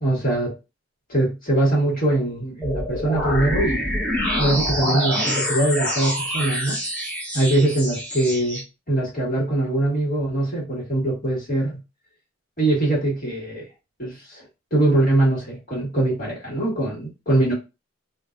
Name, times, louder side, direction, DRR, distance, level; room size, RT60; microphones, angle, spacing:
voice 1, 0.0-0.5 1.1-3.9 4.4-6.8 7.3-8.6 8.9-11.8 12.6-13.6 14.0-14.4 14.7-17.5, right 2 dB, 40° left, -4 dB, 1.7 m, -22 dB
sound 1, 2.6-8.6, equal, 5° left, 1.0 m, -26 dB
3.8 x 2.6 x 2.5 m, 0.27 s
head